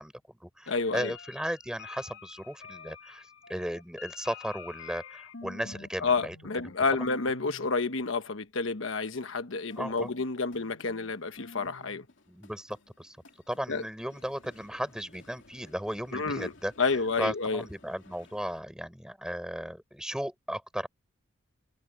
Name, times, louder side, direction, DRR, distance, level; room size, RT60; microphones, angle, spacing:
voice 1, 0.0-6.4 6.6-6.7 9.8-10.1 12.3-13.2 13.5-20.9, equal, 5° right, 6.8 m, -36 dB
voice 2, 0.7-1.1 6.0-12.0 13.7-13.8 16.1-16.5 16.8-17.6, left 4 dB, 80° left, 1.2 m, -29 dB
sound 1, 0.7-5.9 6.2-6.8 7.0-7.7 9.7-18.6, left 4 dB, 65° left, 2.8 m, -49 dB
head